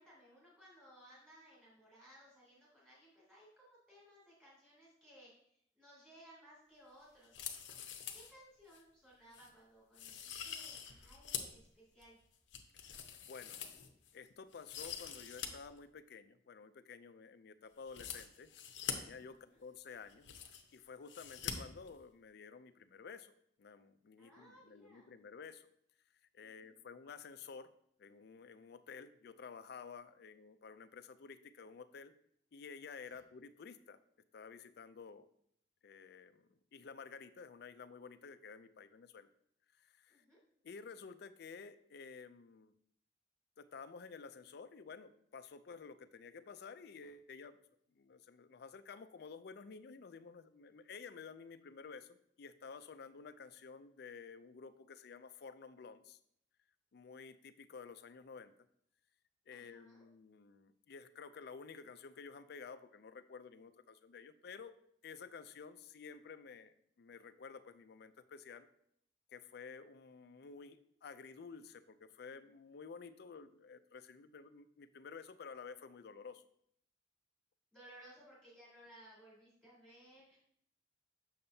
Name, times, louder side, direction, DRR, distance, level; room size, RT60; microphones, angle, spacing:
voice 1, 0.0-7.4 7.6-7.7 8.1-12.2 19.3-19.6 24.2-25.1 26.4-26.8 40.1-40.4 59.5-60.0 77.7-80.4, right 1 dB, 10° right, -8 dB, 3.0 m, -61 dB
sound 1, 7.2-8.3 8.7-8.8 9.3-9.5 9.9-11.6 12.0-14.1 14.5-15.5 15.8-15.9 17.8-18.9 19.8-19.9 20.0-20.8 21.1-21.5 21.8-21.9, left 8 dB, 85° left, 0.8 m, -45 dB
voice 2, 12.9-13.6 14.1-18.5 18.9-23.3 23.6-25.7 26.3-27.7 28.0-32.1 32.5-34.0 34.3-35.3 35.8-39.3 39.8-40.2 40.6-42.7 43.6-47.6 47.9-56.2 56.9-58.5 59.5-64.7 65.0-68.7 69.3-76.4, left 5 dB, 60° left, 11 dB, 0.4 m, -52 dB
6.9 x 6.5 x 2.7 m, 0.68 s
head